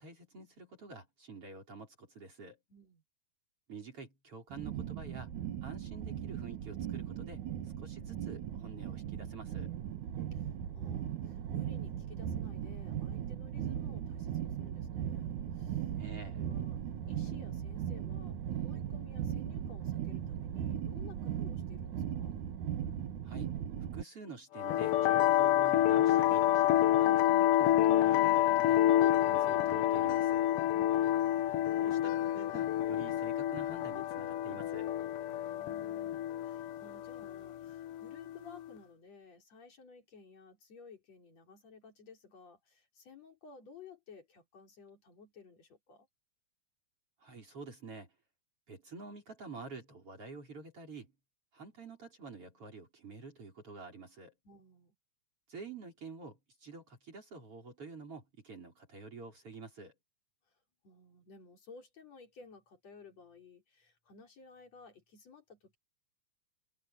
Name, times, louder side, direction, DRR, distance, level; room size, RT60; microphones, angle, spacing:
voice 1, 0.0-2.6 3.7-5.3 5.6-9.7 16.0-16.4 23.2-23.5 23.9-26.5 27.0-30.5 31.7-34.9 47.2-48.1 48.7-51.1 51.5-54.3 55.5-59.9, right 4 dB, 50° right, 5.7 m, -48 dB
voice 2, 2.7-3.0 10.3-22.4 35.3-46.1 54.4-54.9 60.8-65.8, left 4 dB, 60° left, 5.2 m, -56 dB
sound 1, 4.5-24.0, right 10 dB, 80° right, 2.8 m, -38 dB
sound 2, 24.6-38.7, left 12 dB, 85° left, 1.2 m, -28 dB
omnidirectional pair, 3.4 m